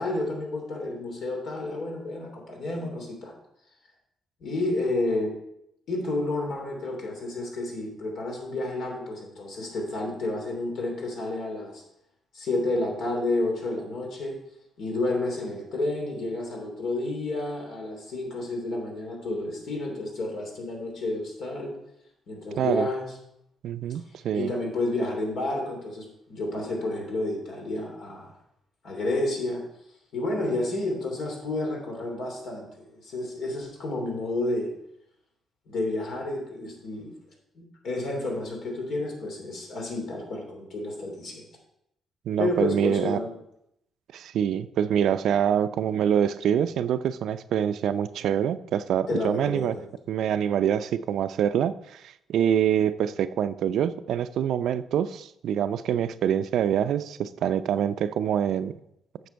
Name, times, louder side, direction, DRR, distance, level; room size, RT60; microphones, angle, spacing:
voice 1, 0.0-3.3 4.4-5.3 5.9-11.8 12.3-14.4 14.8-21.7 22.3-23.1 24.3-28.3 28.8-29.6 30.1-34.7 35.7-37.1 37.5-41.4 42.4-43.3 49.1-49.8, left 2 dB, 70° left, 0 dB, 3.0 m, -30 dB
voice 2, 22.6-22.9 23.6-24.5 42.3-43.2 44.1-49.8 50.1-52.0 52.3-58.7, right 9 dB, 75° right, 13 dB, 0.4 m, -25 dB
9.4 x 6.6 x 4.5 m, 0.79 s
cardioid pair, 90°, 0 cm